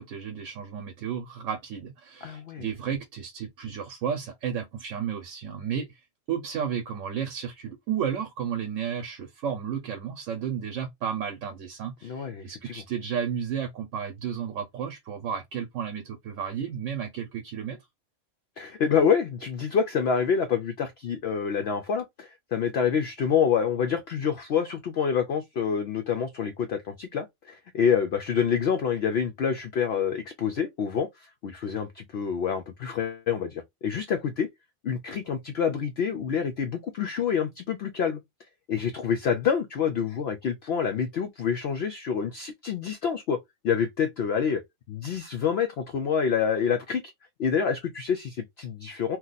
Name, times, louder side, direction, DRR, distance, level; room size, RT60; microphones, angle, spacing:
voice 1, 0.0-6.0 6.3-17.8, right 8 dB, 65° right, 1.0 m, -33 dB
voice 2, 2.2-2.7 12.0-12.7 18.6-34.5 34.8-38.2 38.7-43.4 43.6-44.6 44.9-47.0 47.4-49.2, left 7 dB, 65° left, 0.6 m, -27 dB
2.8 x 2.2 x 3.9 m
omnidirectional pair, 1.5 m